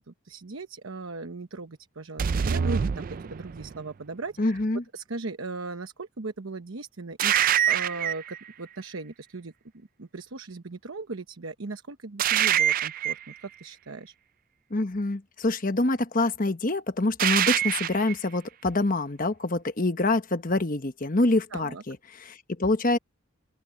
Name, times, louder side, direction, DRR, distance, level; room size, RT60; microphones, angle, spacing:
voice 1, 0.0-4.6 4.9-14.1 21.5-21.8, right 3 dB, 70° right, 1.0 m, -38 dB
sound 1, 2.2-3.8 7.2-8.4 12.2-13.3 17.2-18.1, right 9 dB, 40° right, 0.3 m, -25 dB
voice 2, 4.4-4.8 14.7-23.0, left 2 dB, 40° left, 1.1 m, -26 dB
open air
head